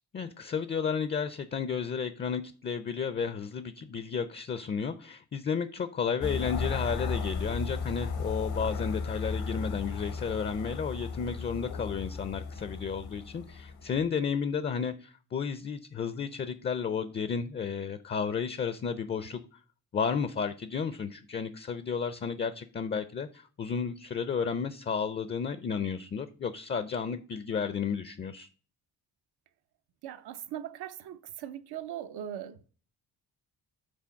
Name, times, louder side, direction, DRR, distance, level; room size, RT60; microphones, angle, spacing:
voice 1, 0.1-19.4 19.9-28.5, left 6 dB, 30° left, 0.4 m, -32 dB
sound 1, 6.2-14.1, left 4 dB, 85° left, 1.1 m, -35 dB
voice 2, 30.0-32.7, right 10 dB, 90° right, 0.7 m, -40 dB
6.1 x 4.0 x 5.6 m
cardioid pair, 120°, 37 cm